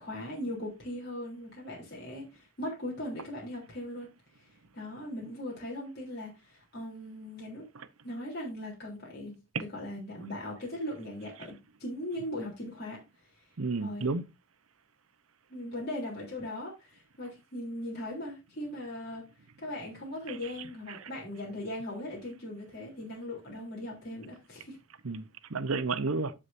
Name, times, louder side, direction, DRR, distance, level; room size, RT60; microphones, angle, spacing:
voice 1, 0.0-4.1 4.4-4.5 4.7-7.6 8.0-9.3 9.7-13.0 13.8-14.1 15.5-19.3 19.6-24.8, left 1 dB, 50° left, 3.5 m, -39 dB
voice 2, 13.6-14.2 20.3-20.4 20.9-21.0 25.0-26.3, right 3 dB, 85° right, 0.8 m, -31 dB
14.5 x 4.9 x 2.6 m
head